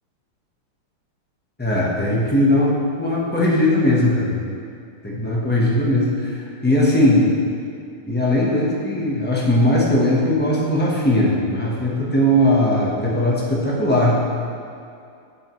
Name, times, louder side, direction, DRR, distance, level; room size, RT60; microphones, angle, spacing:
voice 1, 1.6-4.4 5.0-7.3 8.1-14.2, left 1 dB, 15° left, -5 dB, 0.4 m, -19 dB
9.3 x 7.5 x 3.1 m, 2.4 s
omnidirectional pair, 2.4 m